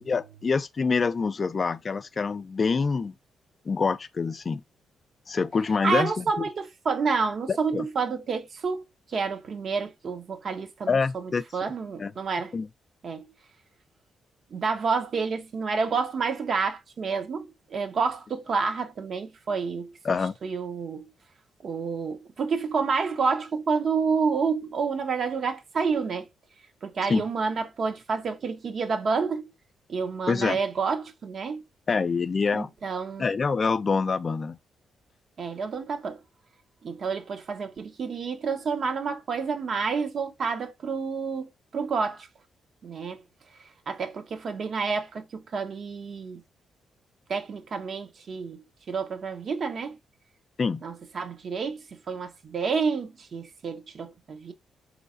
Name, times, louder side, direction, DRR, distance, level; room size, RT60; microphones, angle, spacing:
voice 1, 0.1-3.2 3.7-4.6 5.3-6.4 7.5-7.9 10.9-11.7 12.0-12.1 12.5-12.7 20.0-20.3 27.0-27.2 30.3-30.6 31.9-32.7 33.2-34.6 50.6-50.8, left 5 dB, 45° left, 0.3 m, -26 dB
voice 2, 5.8-8.8 9.1-12.5 13.0-13.2 14.5-21.1 21.6-26.3 26.8-29.5 29.9-31.6 32.5-33.3 35.4-36.2 36.8-42.3 42.8-43.2 43.6-46.4 47.3-50.0 50.8-54.5, right 5 dB, 60° right, 0.8 m, -29 dB
4.0 x 3.1 x 2.5 m
supercardioid pair, 55°, 0 cm